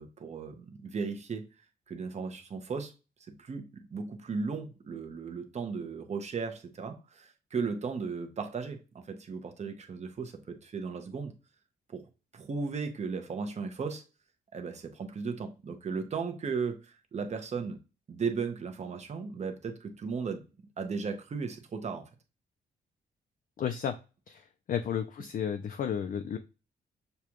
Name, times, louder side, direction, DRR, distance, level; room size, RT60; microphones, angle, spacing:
voice 1, 0.0-1.5 1.9-2.9 3.4-11.3 11.9-12.0 12.3-14.0 14.5-17.8 18.1-20.4 20.8-22.1, right 5 dB, 40° right, 0.9 m, -36 dB
voice 2, 23.6-23.9 24.3-26.4, left 8 dB, 50° left, 0.5 m, -33 dB
6.7 x 2.4 x 3.0 m
cardioid pair, 120°, 18 cm